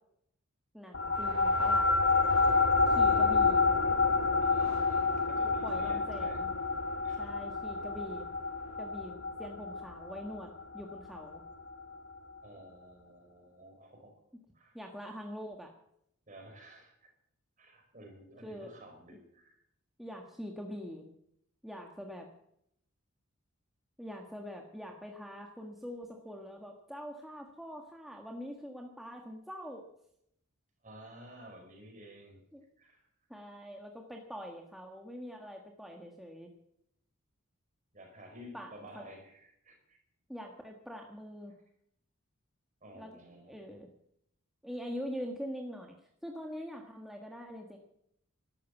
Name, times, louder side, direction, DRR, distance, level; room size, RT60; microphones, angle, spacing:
voice 1, 0.7-1.9 2.9-3.7 5.6-6.5 7.2-8.3 8.8-11.4 14.7-15.7 18.4-18.7 20.0-21.1 21.6-22.3 24.0-29.8 32.5-32.6 33.3-36.5 38.5-39.1 40.3-41.5 42.9-43.9 44.6-46.0 46.2-47.8, equal, ahead, 1 dB, 1.4 m, -44 dB
sound 1, 0.9-11.7, left 4 dB, 55° left, 1.0 m, -28 dB
sound 2, 1.1-8.8, left 2 dB, 80° left, 4.2 m, -56 dB
voice 2, 3.0-3.6 4.4-6.4 7.0-7.3 12.4-14.1 14.5-14.8 16.3-17.1 17.6-19.6 30.8-32.4 32.8-33.1 37.9-40.0 41.5-41.6 42.8-43.6, equal, 35° right, 2 dB, 5.1 m, -52 dB
13.0 x 12.5 x 8.2 m, 0.75 s
head